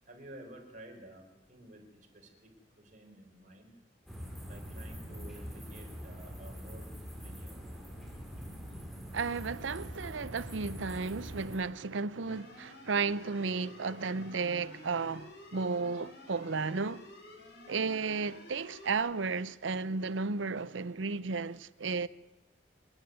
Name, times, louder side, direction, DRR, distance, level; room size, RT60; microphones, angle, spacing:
voice 1, 0.0-3.8 4.4-7.6, right 1 dB, 40° right, 4.7 m, -52 dB
sound 1, 4.1-11.6, equal, ahead, 3.8 m, -44 dB
voice 2, 9.1-17.0 17.7-22.1, right 4 dB, 90° right, 0.7 m, -33 dB
sound 2, 12.2-19.0, left 2 dB, 65° left, 5.7 m, -52 dB
27.5 x 9.9 x 9.5 m
head